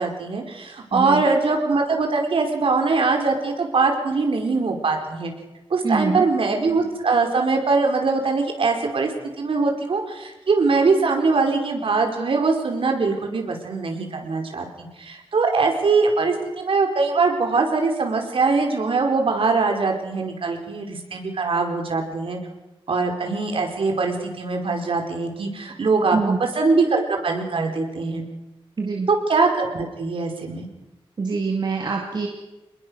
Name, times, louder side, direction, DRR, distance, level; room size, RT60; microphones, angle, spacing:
voice 1, 0.0-5.3 5.7-9.1 9.4-22.4 22.9-28.2 29.1-30.7, right 4 dB, 65° right, 3 dB, 4.7 m, -22 dB
voice 2, 0.9-1.2 5.8-6.2 26.1-26.4 28.8-29.1 31.2-32.3, right 4 dB, 45° right, 0 dB, 2.7 m, -24 dB
28.0 x 21.0 x 6.5 m, 1.0 s
wide cardioid pair, 145°, 10 cm